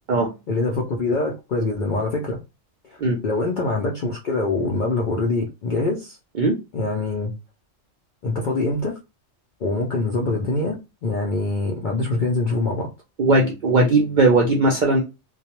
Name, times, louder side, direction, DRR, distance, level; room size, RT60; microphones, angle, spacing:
voice 1, 0.5-2.4 3.2-6.2 6.7-7.3 8.2-9.0 9.6-12.9, left 2 dB, 65° left, 0.5 m, -24 dB
voice 2, 13.2-15.0, right 2 dB, 65° right, 0.4 m, -18 dB
2.2 x 2.1 x 2.9 m
omnidirectional pair, 1.3 m